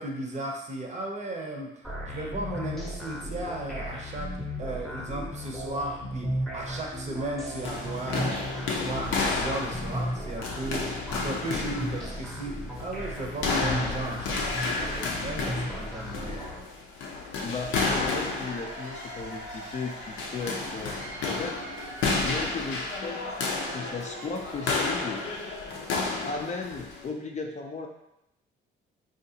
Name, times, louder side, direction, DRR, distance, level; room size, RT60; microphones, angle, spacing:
voice 1, 0.0-1.7 2.1-4.3 4.6-8.4 8.7-14.4 14.8-16.6, right 2 dB, 35° right, 1 dB, 0.7 m, -35 dB
sound 1, 1.8-16.6, equal, ahead, 0.8 m, -35 dB
sound 2, 7.6-27.1, left 3 dB, 80° left, 0.6 m, -32 dB
voice 2, 17.4-21.6 21.9-23.2 23.7-25.2 26.2-27.9, left 4 dB, 35° left, 2 dB, 0.4 m, -36 dB
Cheering / Applause / Crowd, 18.2-25.7, right 1 dB, 85° right, 1.1 m, -43 dB
3.8 x 2.4 x 2.7 m, 0.83 s
cardioid pair, 90°, 20 cm